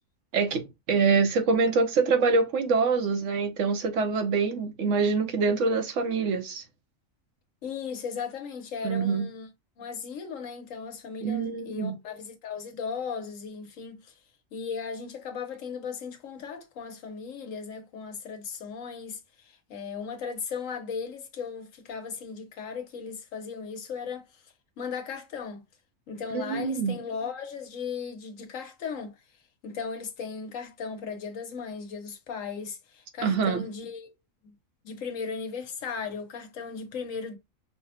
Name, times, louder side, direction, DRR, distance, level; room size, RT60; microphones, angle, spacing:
voice 1, 0.3-6.6 8.8-9.3 11.2-12.0 26.3-27.0 33.2-33.6, right 4 dB, 65° right, 1.0 m, -25 dB
voice 2, 7.6-9.5 9.8-14.2 14.5-25.6 26.1-29.1 29.6-34.1 34.4-34.5 34.8-37.4, left 6 dB, 75° left, 1.2 m, -37 dB
5.6 x 2.1 x 2.8 m
omnidirectional pair, 1.4 m